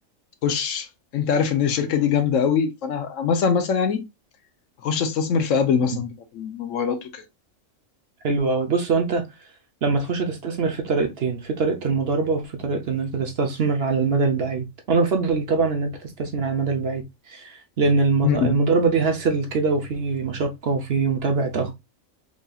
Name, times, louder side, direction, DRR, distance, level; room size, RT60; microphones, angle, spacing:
voice 1, 0.4-0.9 1.1-4.0 4.8-7.2 18.2-18.6, left 7 dB, 70° left, 1.0 m, -23 dB
voice 2, 8.2-9.2 9.8-21.7, right 4 dB, 55° right, 0.9 m, -23 dB
4.7 x 2.7 x 2.3 m
omnidirectional pair, 1.4 m